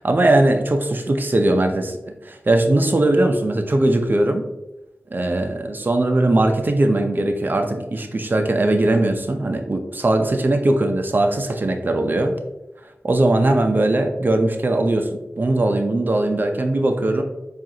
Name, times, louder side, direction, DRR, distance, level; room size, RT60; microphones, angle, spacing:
voice 1, 0.0-2.0 2.2-4.4 5.1-12.3 13.0-17.2, right 2 dB, 50° right, 5 dB, 0.5 m, -19 dB
7.4 x 2.5 x 2.8 m, 0.95 s
wide cardioid pair, 85°, 4 cm